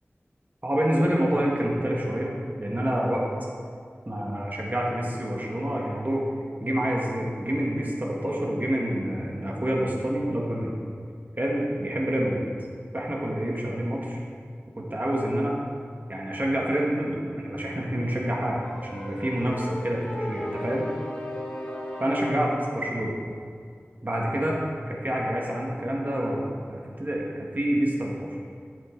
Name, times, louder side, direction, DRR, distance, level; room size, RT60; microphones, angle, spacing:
voice 1, 0.6-3.2 4.0-6.3 6.6-10.8 11.4-12.5 12.9-14.2 14.7-15.6 16.1-20.8 22.0-23.1 24.0-24.6 24.9-26.4 26.7-28.4, equal, 40° right, -3 dB, 1.7 m, -27 dB
sound 1, 18.6-22.6, equal, 20° left, 1.6 m, -35 dB
8.7 x 7.6 x 3.9 m, 2.2 s
wide cardioid pair, 50°, 5 cm